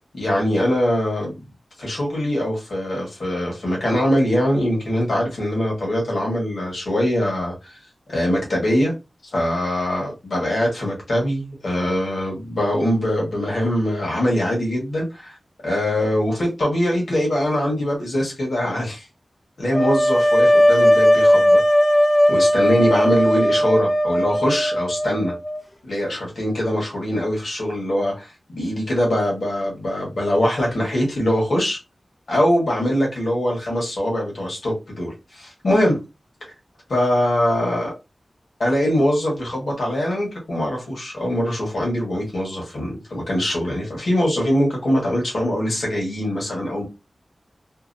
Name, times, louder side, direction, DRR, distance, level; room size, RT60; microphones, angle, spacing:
voice 1, 0.1-1.4 1.8-7.8 8.1-8.9 9.3-15.3 15.6-19.1 19.6-21.6 22.3-25.3 25.9-31.8 32.3-36.0 36.9-37.9 38.6-46.8, equal, 80° left, 1.5 m, -22 dB
sound 1, 19.7-25.6, equal, 35° left, 0.7 m, -17 dB
2.9 x 2.4 x 2.6 m
cardioid pair, 40°, 0 cm